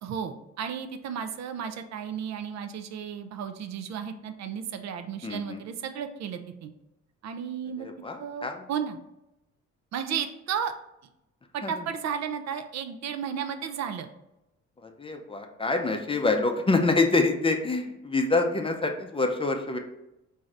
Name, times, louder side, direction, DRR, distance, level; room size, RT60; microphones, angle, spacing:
voice 1, 0.0-6.7 7.2-7.9 8.2-9.0 9.9-10.7 11.5-14.1, right 7 dB, 60° right, 8 dB, 0.4 m, -33 dB
voice 2, 5.2-5.6 7.8-8.6 11.6-11.7 14.8-19.8, left 3 dB, 20° left, 4 dB, 0.5 m, -26 dB
3.6 x 2.7 x 3.2 m, 0.90 s
cardioid pair, 90°, 30 cm